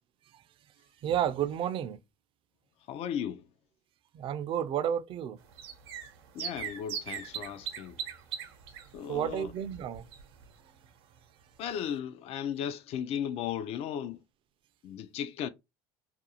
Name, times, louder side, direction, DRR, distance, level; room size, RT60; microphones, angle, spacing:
voice 1, 1.0-2.0 4.1-5.4 9.1-10.1, right 9 dB, 45° right, 0.4 m, -31 dB
voice 2, 2.9-3.4 6.3-8.0 8.9-9.5 11.6-14.2 14.8-15.5, left 9 dB, 50° left, 0.4 m, -36 dB
sound 1, 5.4-10.6 10.8-10.9 11.2-11.3, right 8 dB, 85° right, 0.7 m, -40 dB
2.5 x 2.3 x 2.7 m
supercardioid pair, 100°, 13 cm